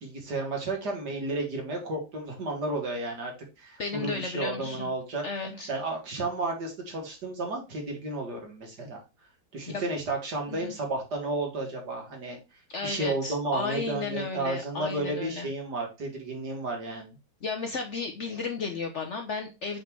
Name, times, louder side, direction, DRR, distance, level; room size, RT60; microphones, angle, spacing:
voice 1, 0.0-5.2 5.7-9.0 9.5-12.4 12.8-17.2, right 2 dB, 65° right, 1 dB, 2.4 m, -32 dB
voice 2, 3.8-4.9 5.2-5.7 9.7-9.8 10.5-10.7 12.7-15.5 17.4-19.8, left 4 dB, 55° left, 4 dB, 0.9 m, -33 dB
5.6 x 3.7 x 4.5 m, 0.27 s
omnidirectional pair, 1.9 m